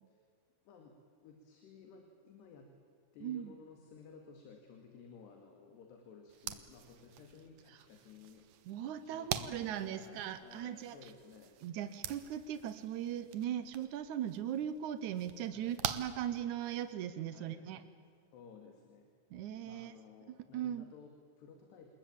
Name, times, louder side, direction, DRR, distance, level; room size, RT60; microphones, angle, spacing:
voice 1, 0.7-1.0 1.2-2.7 3.1-8.5 9.0-11.5 15.5-15.9 17.3-17.7 18.3-19.1 19.7-21.9, left 5 dB, 80° left, 4 dB, 4.3 m, -56 dB
voice 2, 3.2-3.5 7.7-7.8 8.7-11.1 11.6-17.8 19.3-20.0 20.3-20.8, right 10 dB, 85° right, 12 dB, 1.7 m, -39 dB
sound 1, 6.3-16.9, right 10 dB, 65° right, 2.0 m, -45 dB
28.5 x 20.5 x 8.7 m, 2.3 s
omnidirectional pair, 4.8 m